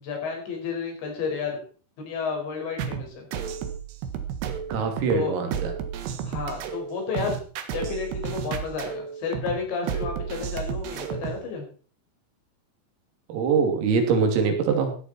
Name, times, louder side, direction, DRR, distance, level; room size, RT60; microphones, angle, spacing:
voice 1, 0.0-1.6 2.0-3.3 5.1-5.3 6.2-7.4 7.7-11.6, left 5 dB, 60° left, 2 dB, 7.3 m, -31 dB
sound 1, 2.8-11.5, right 8 dB, 65° right, 3.2 m, -32 dB
voice 2, 4.7-5.7 13.3-15.0, right 5 dB, 80° right, 4 dB, 5.5 m, -23 dB
16.0 x 11.0 x 4.4 m, 0.40 s
omnidirectional pair, 5.9 m